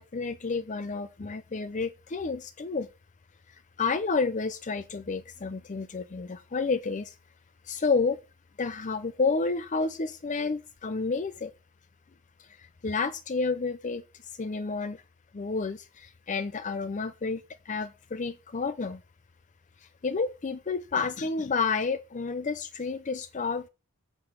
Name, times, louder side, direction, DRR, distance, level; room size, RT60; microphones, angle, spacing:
voice 1, 0.0-2.9 3.5-7.2 7.6-8.2 8.6-11.5 12.4-14.0 14.3-15.0 15.3-19.0 19.8-23.7, left 4 dB, 35° left, 0.5 m, -30 dB
8.6 x 5.3 x 5.7 m
head